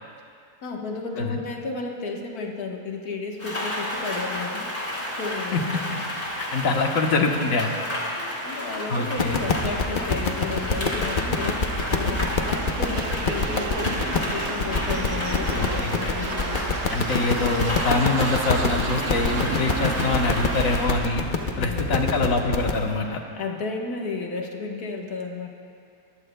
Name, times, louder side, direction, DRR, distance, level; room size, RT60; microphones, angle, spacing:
voice 1, 0.6-4.9 5.2-5.7 7.9-16.8 17.5-17.8 20.6-20.7 21.4-22.0 23.3-25.5, left 4 dB, 85° left, 0 dB, 1.7 m, -33 dB
Rain, 3.4-20.9, left 1 dB, 25° left, 2.2 m, -31 dB
voice 2, 6.4-7.7 8.9-9.4 15.5-15.9 16.9-21.2 21.6-23.2, left 3 dB, 65° left, 3 dB, 1.4 m, -24 dB
sound 1, 9.2-22.8, left 4 dB, 45° left, 0.7 m, -26 dB
sound 2, 12.0-21.1, right 6 dB, 65° right, 0.9 m, -35 dB
21.0 x 14.5 x 2.2 m, 2.4 s
omnidirectional pair, 1.6 m